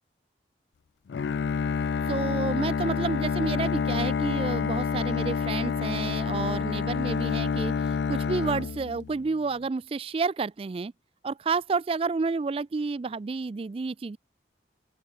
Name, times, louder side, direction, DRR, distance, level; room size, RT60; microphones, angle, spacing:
Bowed string instrument, 1.1-9.3, left 6 dB, 65° left, 0.3 m, -28 dB
voice 1, 2.1-10.9 11.2-14.2, right 4 dB, 30° right, 0.3 m, -30 dB
open air
head